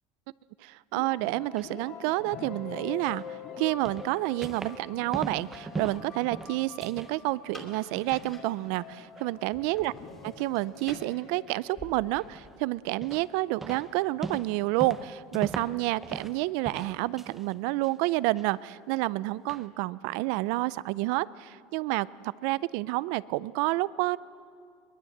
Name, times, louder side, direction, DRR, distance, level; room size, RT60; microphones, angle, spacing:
voice 1, 0.6-3.2 3.6-9.9 10.4-22.1 22.4-24.2, right 19 dB, 60° right, 20 dB, 0.5 m, -29 dB
sound 1, 0.9-12.6, left 7 dB, 45° left, 2.7 m, -45 dB
sound 2, 1.2-1.7 3.0-3.3 3.8-4.9 5.1-7.2 7.5-8.3 8.7-9.3 9.7-9.8 10.3-10.5 11.5-11.6 12.1-12.5 13.0-13.4 13.6-16.4 16.6-17.5 17.8-18.5 18.9-19.0 19.5-19.7, right 3 dB, 10° right, 0.8 m, -40 dB
sound 3, 5.3-12.7, left 2 dB, 10° left, 2.8 m, -52 dB
22.5 x 21.5 x 8.0 m, 2.3 s
cardioid pair, 165°, 3 cm